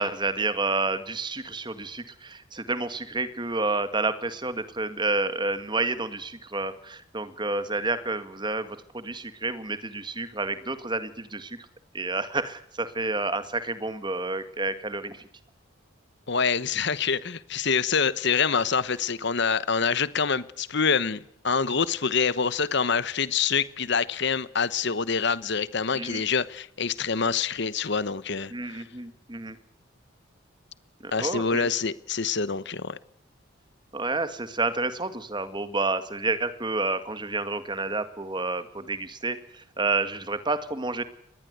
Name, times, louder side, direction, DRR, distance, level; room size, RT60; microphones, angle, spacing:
voice 1, 0.0-11.6 11.9-15.2 25.9-26.2 28.5-29.6 31.0-31.7 33.9-39.4 39.8-41.0, right 3 dB, 20° right, 1.9 m, -29 dB
voice 2, 16.3-28.8 31.1-33.0, left 5 dB, 55° left, 1.1 m, -26 dB
26.0 x 21.0 x 8.1 m
head